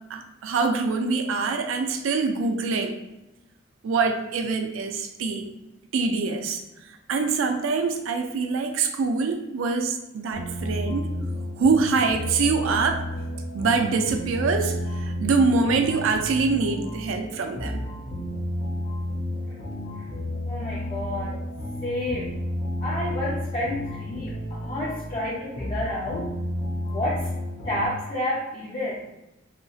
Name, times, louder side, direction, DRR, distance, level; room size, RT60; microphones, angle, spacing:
voice 1, 0.1-2.9 3.8-5.4 5.9-6.6 7.1-11.1 11.6-13.0 13.5-17.8, right 4 dB, 75° right, 5 dB, 0.4 m, -24 dB
sound 1, 10.3-27.9, left 1 dB, 75° left, 0.8 m, -32 dB
voice 2, 20.4-21.3 21.8-22.3 22.8-26.3 26.8-27.3 27.6-29.0, left 1 dB, 30° left, -7 dB, 0.5 m, -30 dB
2.8 x 2.6 x 2.4 m, 0.96 s
head